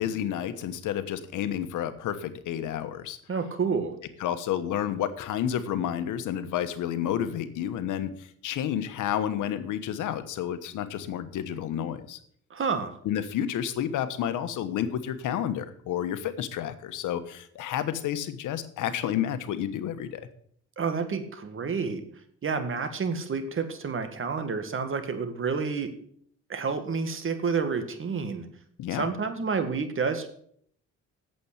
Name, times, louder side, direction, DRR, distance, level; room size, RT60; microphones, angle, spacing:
voice 1, 0.0-3.2 4.2-12.2 13.0-20.3 28.8-29.1, left 10 dB, 85° left, 11 dB, 1.2 m, -30 dB
voice 2, 3.3-4.0 12.5-13.0 20.8-22.0 22.4-25.9 26.5-28.5 28.9-30.3, right 5 dB, 45° right, 8 dB, 1.9 m, -29 dB
8.8 x 7.7 x 8.1 m, 0.63 s
cardioid pair, 90°, 30 cm